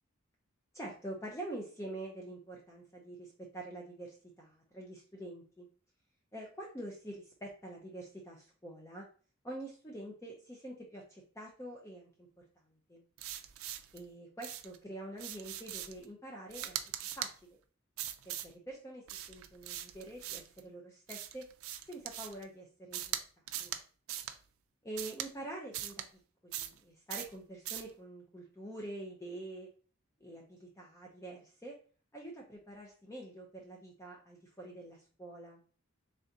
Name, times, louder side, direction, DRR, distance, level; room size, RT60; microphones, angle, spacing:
voice 1, 0.7-5.7 6.3-9.0 9.4-13.0 13.9-16.8 17.2-17.6 18.3-21.5 21.9-23.2 23.6-23.8 24.8-26.0 26.4-29.7 30.2-31.8 32.1-35.6, right 1 dB, 15° left, -1 dB, 0.5 m, -46 dB
sound 1, 13.2-14.0 14.4-14.8 15.2-16.0 16.5-17.3 18.0-18.5 19.1-20.6 21.1-22.4 22.9-23.2 23.5-23.8 24.1-24.4 25.0-25.3 25.7-26.1 26.5-26.8 27.1-27.3 27.7-27.9, right 11 dB, 75° right, 0.4 m, -41 dB
3.8 x 3.4 x 2.7 m, 0.40 s
head